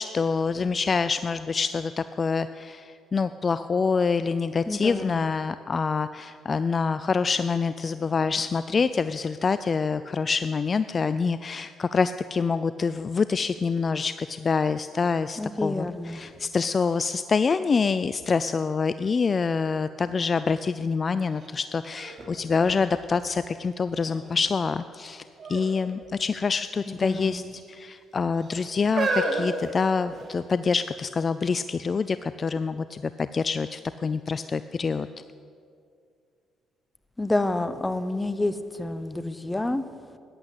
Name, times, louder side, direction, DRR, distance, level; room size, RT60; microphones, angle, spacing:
voice 1, 0.0-15.9 16.1-25.2 25.5-27.4 27.7-35.1, left 5 dB, 40° left, 13 dB, 0.4 m, -26 dB
voice 2, 4.7-5.3 15.4-16.3 26.9-27.5 37.2-39.8, left 2 dB, 15° left, 13 dB, 1.0 m, -29 dB
sound 1, 21.4-21.5 21.9-23.4 24.0-24.5 25.4-25.7 26.0-26.2 27.0-27.7 28.4-30.4 31.2-31.3, right 2 dB, 50° right, 3.2 m, -31 dB
14.5 x 10.5 x 8.3 m, 2.3 s
supercardioid pair, 60°, 0 cm